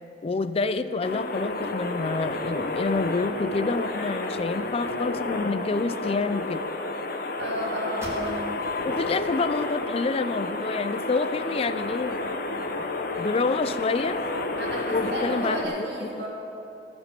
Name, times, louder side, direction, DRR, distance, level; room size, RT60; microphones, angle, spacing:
voice 1, 0.2-6.6 8.8-12.2 13.2-14.3 14.9-16.2, left 3 dB, 35° left, 12 dB, 0.4 m, -28 dB
sound 1, 1.0-15.7, left 2 dB, 55° left, 0.8 m, -31 dB
voice 2, 7.4-8.4 14.6-16.3, right 1 dB, 65° right, -4 dB, 2.6 m, -32 dB
sound 2, 8.0-8.8 9.3-9.4 9.9-10.8, equal, 15° right, 2.0 m, -43 dB
15.5 x 5.3 x 6.8 m, 2.9 s
head